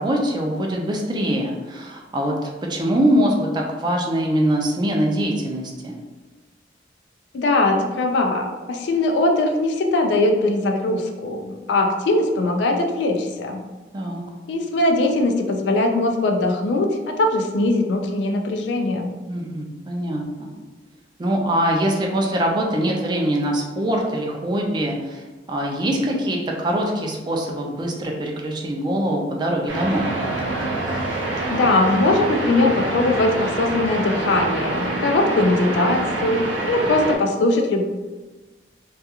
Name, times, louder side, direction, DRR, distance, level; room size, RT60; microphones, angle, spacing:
voice 1, 0.0-2.3 2.7-6.0 13.9-14.2 19.3-20.5 21.2-25.2 25.5-30.1, right 1 dB, 25° right, 0 dB, 0.3 m, -23 dB
voice 2, 7.3-13.6 14.5-19.1 31.5-37.9, left 2 dB, 70° left, 3 dB, 0.3 m, -21 dB
sound 1, 29.7-37.2, right 2 dB, 80° right, 0.5 m, -26 dB
2.3 x 2.3 x 2.7 m, 1.3 s
head